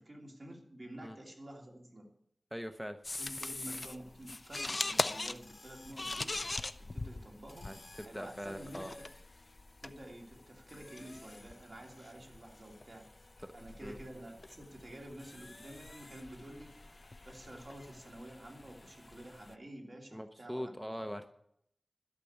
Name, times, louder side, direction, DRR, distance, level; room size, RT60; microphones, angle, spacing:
voice 1, 0.0-2.1 3.2-6.4 6.8-7.7 8.0-9.1 9.8-13.0 13.5-16.7 17.2-21.1, right 1 dB, 50° right, 0 dB, 2.9 m, -50 dB
voice 2, 2.5-3.0 7.6-8.9 13.4-13.5 13.8-14.0 20.1-21.3, equal, ahead, 7 dB, 0.8 m, -42 dB
sound 1, 3.0-19.6, left 2 dB, 40° left, 0.6 m, -42 dB
12.0 x 6.7 x 9.6 m, 0.72 s
wide cardioid pair, 75°, 0 cm